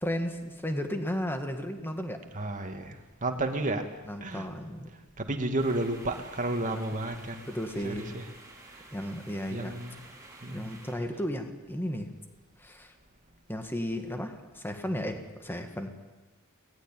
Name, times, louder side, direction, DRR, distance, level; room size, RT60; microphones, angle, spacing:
voice 1, 0.0-2.3 4.1-4.9 6.7-7.0 7.5-8.1 8.9-9.7 10.5-12.1 12.6-12.9 13.5-15.9, equal, 10° left, 6 dB, 2.0 m, -34 dB
voice 2, 2.3-3.9 4.2-4.5 5.2-7.5 7.8-8.2 8.7-8.9 9.5-10.0 10.4-10.7, right 2 dB, 35° right, 5 dB, 2.3 m, -32 dB
sound 1, 5.6-10.9, right 2 dB, 15° right, 5.3 m, -51 dB
22.5 x 19.5 x 9.2 m, 1.2 s
head